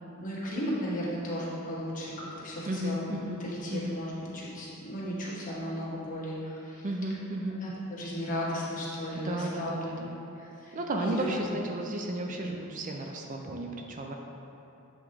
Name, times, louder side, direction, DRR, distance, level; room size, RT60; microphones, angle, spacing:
voice 1, 0.2-6.8 7.6-7.7 8.0-10.0 10.4-10.7 11.0-11.3 12.3-12.6, equal, 40° left, -6 dB, 1.4 m, -35 dB
voice 2, 2.7-3.4 3.7-4.0 6.8-7.6 9.1-10.2 10.7-14.1, right 1 dB, 35° right, 2 dB, 0.4 m, -33 dB
7.7 x 3.6 x 4.7 m, 2.9 s
head